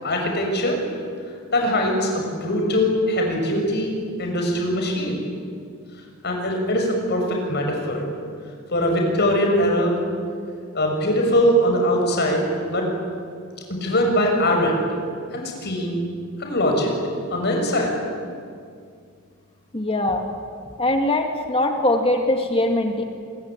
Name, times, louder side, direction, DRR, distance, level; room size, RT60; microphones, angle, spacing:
voice 1, 0.0-0.8 1.5-3.9 4.2-5.2 6.2-8.1 8.7-10.0 10.7-12.9 13.7-14.8 15.3-16.0 16.4-16.9 17.3-17.9, equal, 50° left, 2 dB, 6.5 m, -21 dB
voice 2, 19.7-20.3 20.8-23.0, left 1 dB, 25° left, 4 dB, 1.9 m, -21 dB
26.5 x 22.0 x 9.0 m, 2.3 s
head